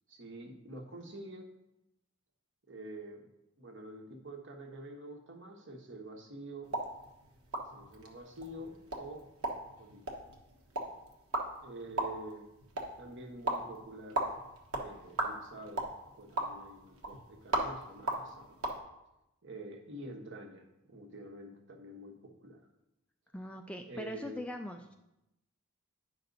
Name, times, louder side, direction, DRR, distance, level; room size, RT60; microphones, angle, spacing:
voice 1, 0.1-1.5 2.7-3.3 3.6-6.7 7.7-9.3 9.8-10.0 11.6-12.5 13.0-14.3 14.8-15.9 16.2-18.8 19.4-22.7 23.8-24.4, right 1 dB, 55° right, 3 dB, 1.2 m, -47 dB
sound 1, 6.6-18.8, right 1 dB, 75° right, 1.3 m, -38 dB
voice 2, 23.3-24.9, left 1 dB, 5° left, 4 dB, 0.3 m, -41 dB
9.5 x 5.8 x 4.0 m, 0.90 s
head